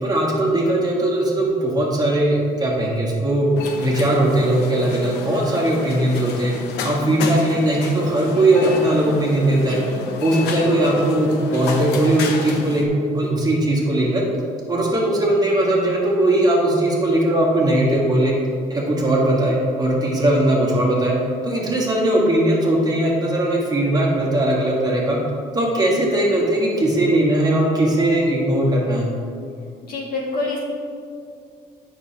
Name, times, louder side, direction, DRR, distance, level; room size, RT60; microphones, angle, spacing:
voice 1, 0.0-3.5 3.8-6.5 6.8-9.8 10.2-12.9 13.1-14.2 14.7-18.3 18.7-21.1 21.4-25.2 25.5-29.1, right 1 dB, 25° right, -4 dB, 1.5 m, -19 dB
sound 1, 3.6-12.9, left 4 dB, 85° left, 0.7 m, -31 dB
voice 2, 29.9-30.6, left 3 dB, 60° left, -3 dB, 1.7 m, -27 dB
8.5 x 6.1 x 2.8 m, 2.4 s
cardioid pair, 110°, 17 cm